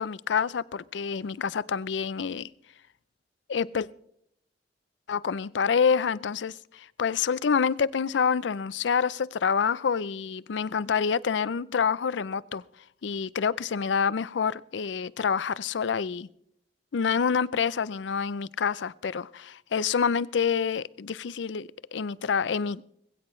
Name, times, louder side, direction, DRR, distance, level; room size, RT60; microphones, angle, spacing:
voice 1, 0.0-2.5 3.5-3.9 5.1-12.6 13.0-16.3 16.9-22.8, left 6 dB, 85° left, 0.5 m, -27 dB
20.5 x 16.0 x 3.2 m
head